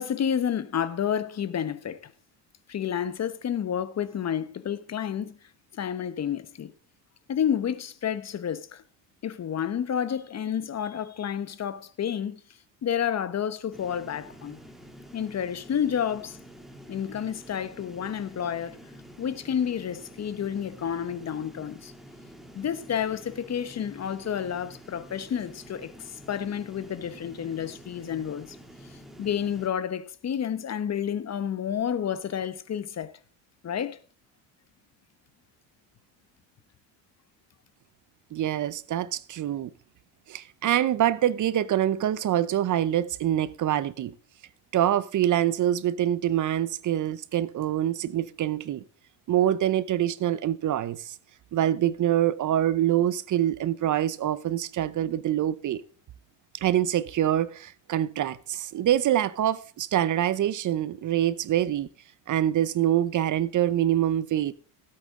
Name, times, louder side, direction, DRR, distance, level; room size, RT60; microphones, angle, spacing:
voice 1, 0.0-2.1 2.7-5.4 5.7-6.7 7.3-8.8 9.2-12.4 12.8-14.6 15.1-16.4 16.9-18.8 19.2-21.9 22.5-25.9 26.3-28.6 29.2-33.1 33.6-34.0, left 8 dB, 35° left, 1.1 m, -30 dB
sound 1, 13.7-29.7, equal, ahead, 2.5 m, -48 dB
voice 2, 38.3-39.7 40.3-44.1 44.7-48.8 49.3-51.1 51.5-55.8 56.5-61.9 62.3-64.5, right 11 dB, 45° right, 0.8 m, -25 dB
16.5 x 8.7 x 3.7 m
supercardioid pair, 100°, 43 cm